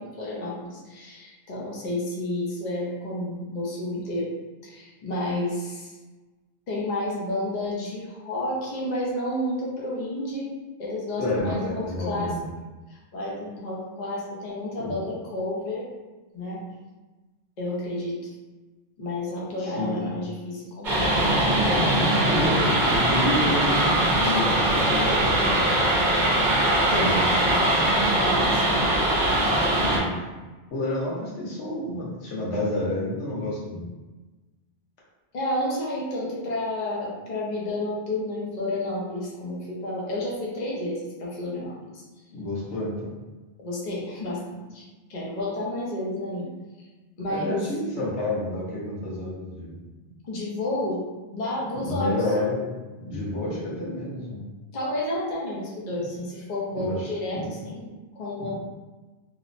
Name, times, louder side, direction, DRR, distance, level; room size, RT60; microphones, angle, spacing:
voice 1, 0.0-4.3 4.6-5.9 6.7-10.5 10.8-12.4 12.9-15.9 16.3-16.7 17.6-18.3 19.0-21.3 26.9-27.2 28.2-28.8 35.3-42.0 43.6-44.8 45.1-46.5 47.2-47.7 50.2-51.1 51.3-52.2 54.7-58.5, left 1 dB, 45° left, -5 dB, 0.7 m, -31 dB
voice 2, 11.2-12.4 14.8-15.0 19.6-20.0 22.3-25.8 26.9-27.6 29.8-30.2 30.7-33.8 42.3-43.1 47.3-49.8 51.7-52.6 53.0-54.4 56.7-57.5 58.4-58.5, left 1 dB, 90° left, -6 dB, 1.1 m, -29 dB
sound 1, 20.8-30.0, right 1 dB, 50° right, 0.8 m, -21 dB
3.0 x 2.0 x 2.5 m, 1.2 s
omnidirectional pair, 1.1 m